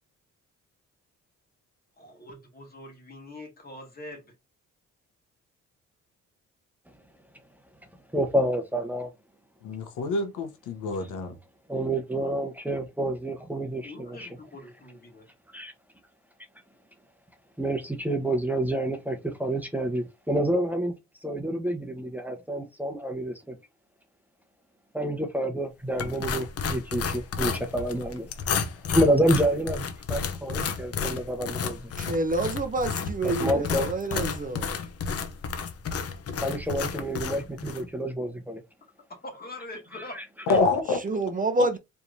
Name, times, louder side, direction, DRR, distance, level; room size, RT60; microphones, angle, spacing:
voice 1, 2.0-4.2 13.8-15.3 39.1-40.2, left 2 dB, 30° left, 2.2 m, -43 dB
voice 2, 8.1-9.1 11.7-14.3 15.5-15.7 17.6-20.9 21.2-23.6 24.9-28.3 28.9-31.9 33.4-33.9 36.4-38.6 40.1-40.2, right 1 dB, 5° right, 1.0 m, -28 dB
voice 3, 9.6-11.4 40.5-41.0, left 3 dB, 85° left, 1.1 m, -26 dB
sound 1, 26.0-37.8, left 6 dB, 50° left, 0.8 m, -32 dB
voice 4, 32.0-34.7 40.9-41.8, right 2 dB, 25° right, 0.7 m, -28 dB
4.5 x 3.4 x 2.7 m
cardioid pair, 90°, 30 cm